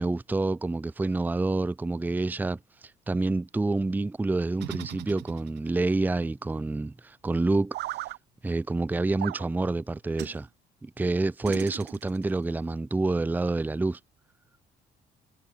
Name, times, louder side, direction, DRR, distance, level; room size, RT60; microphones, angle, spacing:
voice 1, 0.0-8.1 8.4-10.5 10.8-14.0, right 2 dB, 10° right, 0.6 m, -28 dB
sound 1, 4.6-5.8 7.7-8.2 9.2-9.5 10.2-10.4 11.4-12.3, right 17 dB, 80° right, 2.0 m, -37 dB
cardioid pair, 110°, 17 cm